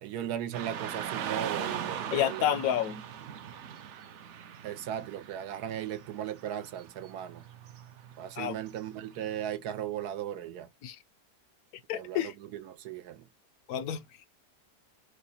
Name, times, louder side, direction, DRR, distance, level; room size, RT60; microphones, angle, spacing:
voice 1, 0.0-2.6 4.6-7.4 8.2-10.7 11.9-13.2, right 10 dB, 80° right, 1.2 m, -37 dB
Car passing by / Traffic noise roadway noise, 0.5-9.6, right 9 dB, 65° right, 0.7 m, -40 dB
voice 2, 2.1-3.0 8.4-8.6 10.8-11.0 11.9-12.3 13.7-14.0, left 10 dB, 75° left, 1.0 m, -29 dB
4.8 x 2.2 x 2.6 m
omnidirectional pair, 1.7 m